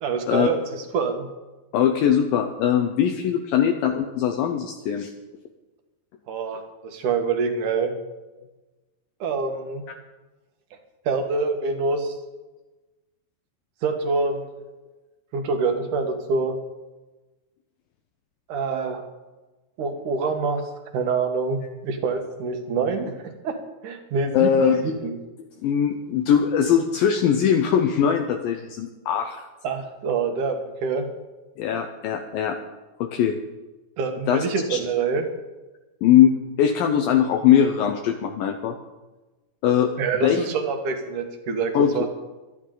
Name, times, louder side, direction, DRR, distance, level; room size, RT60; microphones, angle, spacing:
voice 1, 0.0-1.3 6.3-7.9 9.2-9.8 11.1-12.1 13.8-14.5 15.3-16.5 18.5-19.0 19.8-20.6 20.9-23.6 23.8-25.2 29.6-31.1 34.0-35.3 40.0-42.1, right 4 dB, 60° right, 4 dB, 2.7 m, -26 dB
voice 2, 1.7-5.1 24.3-24.8 25.6-29.4 31.6-32.6 33.0-33.4 34.3-34.4 34.7-34.8 36.0-38.8 39.6-40.4 41.7-41.9, left 9 dB, 75° left, 5 dB, 2.4 m, -21 dB
24.5 x 10.5 x 3.9 m, 1.1 s
omnidirectional pair, 4.5 m